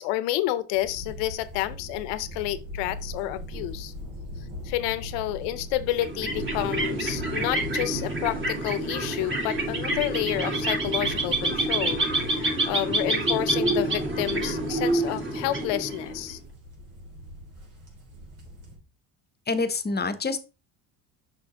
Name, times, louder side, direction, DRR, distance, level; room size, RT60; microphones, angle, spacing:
voice 1, 0.0-3.9 4.6-16.4, left 15 dB, 80° left, 0.8 m, -30 dB
sound 1, 0.7-18.8, left 1 dB, 60° right, 3.1 m, -41 dB
sound 2, 5.9-16.3, right 2 dB, 30° right, 2.3 m, -27 dB
voice 2, 19.5-20.4, left 3 dB, 25° left, 0.9 m, -26 dB
6.3 x 5.8 x 3.0 m
supercardioid pair, 80°, 42 cm